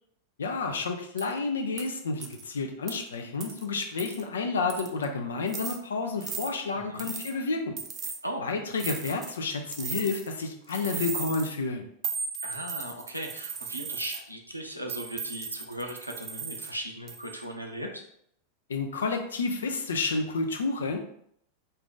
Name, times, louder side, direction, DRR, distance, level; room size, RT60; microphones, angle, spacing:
voice 1, 0.4-7.8 8.4-11.9 18.7-21.0, left 4 dB, 65° left, 4 dB, 0.4 m, -30 dB
sound 1, 1.2-1.3 1.8-1.9 2.2-2.4 2.9-3.0 3.4-3.6 4.0-4.2 4.7-5.0 5.5-5.8 6.2-6.5 7.0-7.3 7.8-8.2 8.8-9.4 9.7-10.3 10.7-11.5 12.0-14.2 14.9-16.7 17.1-17.4, right 6 dB, 30° right, 0.4 m, -37 dB
voice 2, 6.7-7.1 8.2-8.4 12.4-18.0, right 1 dB, 85° right, 2 dB, 0.5 m, -38 dB
2.6 x 2.4 x 3.7 m, 0.69 s
figure-of-eight pair, 90°, 0 cm